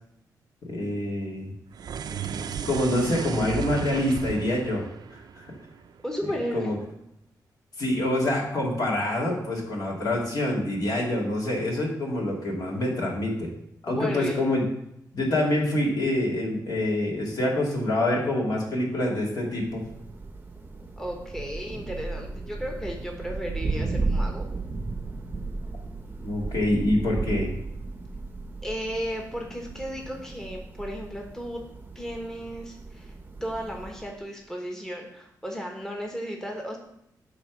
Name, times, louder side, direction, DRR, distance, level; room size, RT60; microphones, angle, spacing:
voice 1, 0.6-1.5 2.6-5.5 6.5-6.8 7.8-13.5 13.8-14.7 15.1-19.9 26.2-27.5, left 1 dB, 65° left, -2 dB, 2.2 m, -26 dB
sound 1, 1.7-6.1, right 7 dB, 70° right, 0.4 m, -35 dB
voice 2, 6.0-6.7 13.9-14.4 21.0-24.5 28.6-31.6 31.9-33.1 33.4-36.8, equal, 5° left, 0 dB, 1.1 m, -34 dB
Thunder, 19.6-34.2, right 3 dB, 25° right, 0.7 m, -34 dB
8.4 x 3.4 x 6.0 m, 0.78 s
wide cardioid pair, 105°, 7 cm